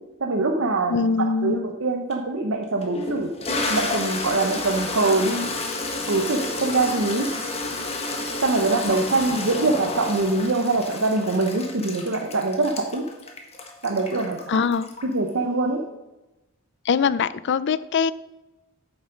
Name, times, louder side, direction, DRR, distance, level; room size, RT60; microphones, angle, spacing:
voice 1, 0.2-5.5 6.1-7.3 8.4-13.0 13.8-14.6 15.0-15.9, right 3 dB, 65° right, 2 dB, 0.8 m, -24 dB
voice 2, 0.9-1.7 14.5-14.9 16.8-18.1, left 5 dB, 55° left, 16 dB, 0.4 m, -22 dB
Toilet flush, 2.1-2.2 2.8-15.3, left 2 dB, 30° left, 1.3 m, -30 dB
8.8 x 7.2 x 5.1 m, 1.0 s
head